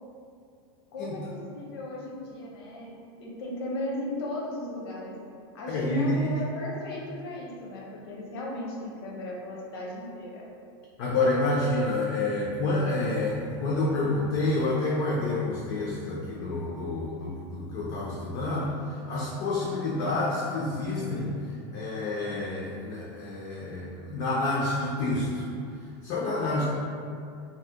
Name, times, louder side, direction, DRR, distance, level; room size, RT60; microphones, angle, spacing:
voice 1, 0.9-1.2 1.5-5.1 5.5-10.4, left 1 dB, 70° left, -3 dB, 0.7 m, -36 dB
voice 2, 5.7-6.3 11.0-25.5 26.0-26.6, left 2 dB, 35° left, -5 dB, 0.4 m, -28 dB
2.7 x 2.0 x 3.4 m, 2.4 s
supercardioid pair, 170°, 13 cm